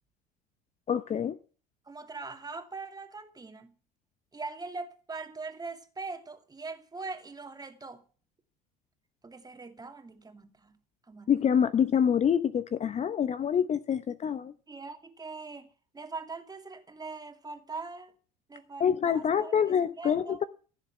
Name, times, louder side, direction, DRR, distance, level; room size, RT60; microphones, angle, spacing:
voice 1, 0.9-1.4 11.3-14.5 18.8-20.4, left 8 dB, 35° left, 0.8 m, -26 dB
voice 2, 1.9-3.7 4.3-8.0 9.2-10.8 11.1-11.3 14.7-15.7 15.9-18.1 18.5-20.4, right 3 dB, 20° right, 2.4 m, -42 dB
15.5 x 7.2 x 9.4 m
hypercardioid pair, 65°, 21 cm